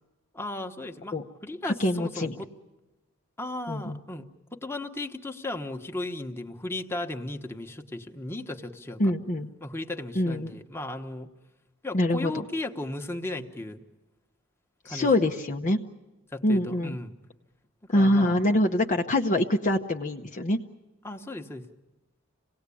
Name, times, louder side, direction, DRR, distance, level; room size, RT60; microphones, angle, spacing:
voice 1, 0.3-1.2 1.4-2.5 3.4-9.1 9.6-11.3 11.8-13.8 14.8-15.4 16.3-17.1 17.9-18.4 21.0-21.6, left 2 dB, 10° left, 3 dB, 1.2 m, -36 dB
voice 2, 1.6-2.3 3.7-4.0 9.0-9.5 10.2-10.5 11.9-12.3 14.9-15.8 16.4-17.0 17.9-20.6, left 1 dB, 35° left, 4 dB, 0.8 m, -24 dB
27.0 x 18.5 x 8.5 m, 1.1 s
head